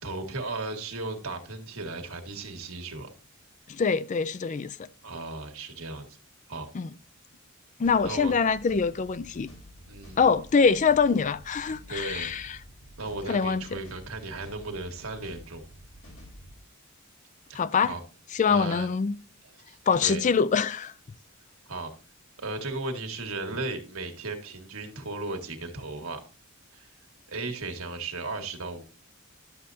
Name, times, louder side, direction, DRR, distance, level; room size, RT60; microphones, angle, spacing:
voice 1, 0.0-3.1 5.0-6.1 6.5-6.7 8.0-8.3 9.9-10.2 11.9-12.3 13.0-15.6 17.5-17.6 17.9-18.0 18.5-18.9 19.7-20.2 21.7-21.9 22.4-26.2 26.7-26.9 27.3-28.8, right 2 dB, 85° right, 1.7 m, -35 dB
voice 2, 3.7-4.9 6.7-6.9 7.8-9.5 10.2-12.6 13.3-13.8 17.5-17.9 18.3-19.2 19.9-20.9, left 5 dB, 35° left, 0.4 m, -24 dB
sound 1, 7.8-16.6, equal, 80° left, 3.8 m, -49 dB
11.5 x 7.4 x 2.7 m
head